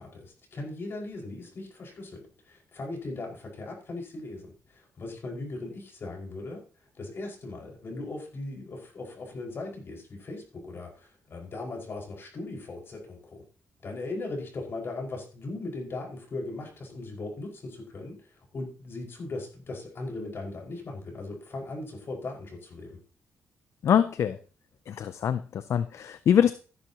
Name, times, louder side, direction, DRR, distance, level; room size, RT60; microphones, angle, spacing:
voice 1, 0.0-6.6 7.0-13.4 13.8-23.0, left 2 dB, 50° left, 0 dB, 5.7 m, -38 dB
voice 2, 23.8-24.4 24.9-26.5, left 9 dB, 70° left, 13 dB, 0.6 m, -24 dB
14.5 x 11.0 x 3.0 m, 0.38 s
cardioid pair, 90°, 5 cm